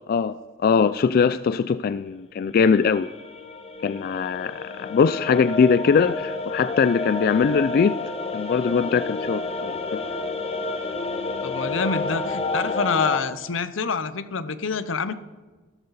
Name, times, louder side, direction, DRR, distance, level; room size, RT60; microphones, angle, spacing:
voice 1, 0.1-3.1 3.8-8.0 8.3-10.0, left 6 dB, 50° left, 13 dB, 0.3 m, -21 dB
sound 1, 2.8-13.2, left 3 dB, 30° left, 1.0 m, -30 dB
voice 2, 11.4-15.1, left 5 dB, 80° left, 14 dB, 0.8 m, -27 dB
14.5 x 13.5 x 4.1 m, 1.3 s
head